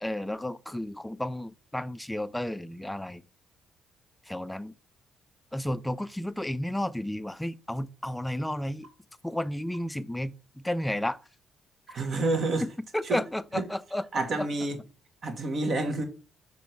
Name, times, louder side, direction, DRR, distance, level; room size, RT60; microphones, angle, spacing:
voice 1, 0.0-3.2 4.3-4.7 5.5-8.9 9.2-11.2 11.9-12.0 12.6-14.1 14.4-14.5, left 1 dB, 5° left, 0.5 m, -32 dB
sound 1, 8.8-9.0 9.7-9.9 11.9-12.1 12.4-12.7, right 2 dB, 75° right, 2.6 m, -55 dB
voice 2, 11.9-12.6 13.0-13.2 13.6-13.7 14.1-14.8 15.2-16.0, right 2 dB, 45° right, 1.3 m, -28 dB
7.1 x 3.2 x 5.4 m
figure-of-eight pair, 45°, 0 cm